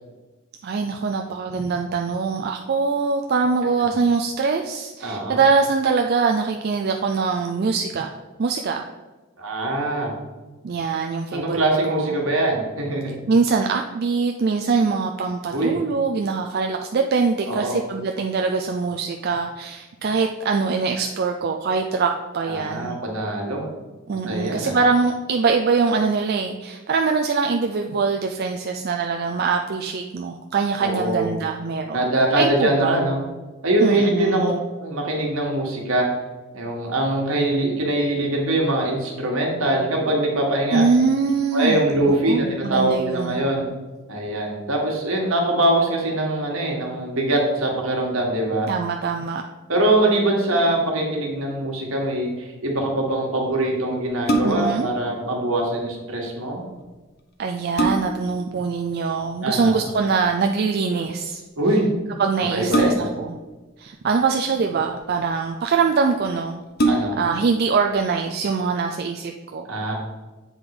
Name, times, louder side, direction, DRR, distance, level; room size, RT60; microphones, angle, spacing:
voice 1, 0.6-8.1 8.4-8.8 10.6-12.2 13.3-23.0 24.1-32.1 32.4-33.0 33.8-34.6 40.7-41.8 42.2-43.4 48.7-49.4 54.4-54.9 57.4-61.4 62.2-63.4 63.8-69.6, right 4 dB, 45° right, 3 dB, 0.3 m, -23 dB
voice 2, 5.0-5.4 9.4-10.1 11.3-13.1 15.5-15.8 17.5-17.7 22.4-23.6 24.2-24.7 30.8-31.3 31.9-33.2 33.6-36.1 36.5-40.8 41.5-43.7 44.1-48.7 49.7-56.6 59.4-59.8 61.6-61.9 62.5-63.0 66.8-67.1 69.7-69.9, right 1 dB, 70° right, -1 dB, 1.6 m, -22 dB
sound 1, 54.2-54.8 56.8-56.9 57.4-58.3 59.9-60.2 62.7-63.3 64.3-65.0 65.7-65.8 66.1-66.2 66.7-67.4 67.9-68.0, right 1 dB, 45° left, 0.7 m, -23 dB
7.9 x 3.8 x 4.9 m, 1.2 s
head